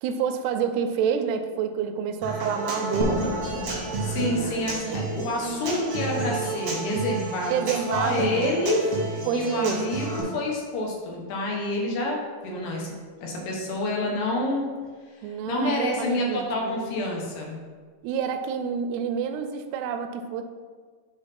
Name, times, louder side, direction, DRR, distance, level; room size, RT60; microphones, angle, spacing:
voice 1, 0.0-3.3 4.9-5.0 5.3-5.7 7.5-8.3 9.3-9.8 15.2-17.0 18.0-20.4, right 7 dB, 85° right, 7 dB, 2.5 m, -28 dB
Human voice / Acoustic guitar, 2.2-10.2, right 3 dB, 65° right, 1.4 m, -31 dB
sound 1, 3.0-6.5, equal, 35° left, 0.3 m, -33 dB
voice 2, 4.0-12.9 13.2-14.6 15.2-17.6, left 1 dB, 80° left, -2 dB, 3.2 m, -28 dB
Keyboard (musical), 8.8-12.3, left 1 dB, 55° left, 2.1 m, -50 dB
7.0 x 3.5 x 5.8 m, 1.5 s
omnidirectional pair, 4.7 m